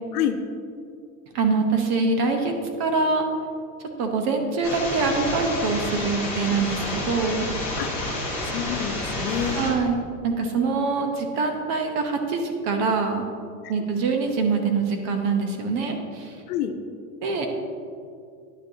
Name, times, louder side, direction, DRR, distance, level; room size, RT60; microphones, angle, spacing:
voice 1, 1.3-2.5 2.8-3.3 4.0-7.5 9.5-10.0 10.2-13.3 13.7-16.3 17.2-17.5, right 4 dB, 35° right, 4 dB, 0.9 m, -24 dB
sound 1, 4.6-9.7, left 1 dB, 5° right, 2.2 m, -29 dB
voice 2, 7.8-8.2 8.5-9.7 10.4-10.6 16.5-16.7, left 10 dB, 85° left, 7 dB, 0.9 m, -28 dB
10.5 x 8.7 x 2.8 m, 2.3 s
supercardioid pair, 165°, 45 cm